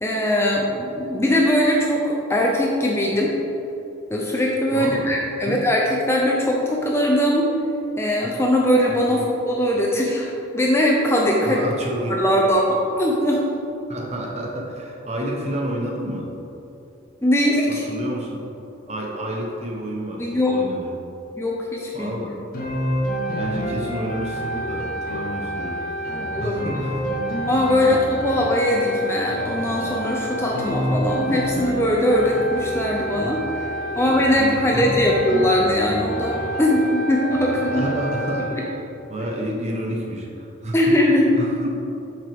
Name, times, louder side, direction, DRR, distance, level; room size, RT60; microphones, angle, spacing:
voice 1, 0.0-3.3 4.1-7.5 8.0-11.6 12.1-13.5 17.2-17.8 20.2-20.6 21.4-22.1 26.1-26.7 27.5-33.4 34.0-37.9 40.7-41.5, left 1 dB, 10° left, -2 dB, 0.6 m, -20 dB
voice 2, 4.7-5.1 5.4-5.6 8.9-9.3 11.4-12.2 13.9-16.3 17.9-18.4 18.9-21.0 21.9-22.4 23.3-26.1 26.4-27.1 27.8-28.0 33.9-35.0 37.7-38.6 39.1-40.9 41.4-41.9, right 1 dB, 35° right, -2 dB, 1.1 m, -30 dB
sound 1, 22.5-38.6, equal, 45° left, 1.2 m, -28 dB
8.0 x 5.9 x 3.6 m, 3.0 s
head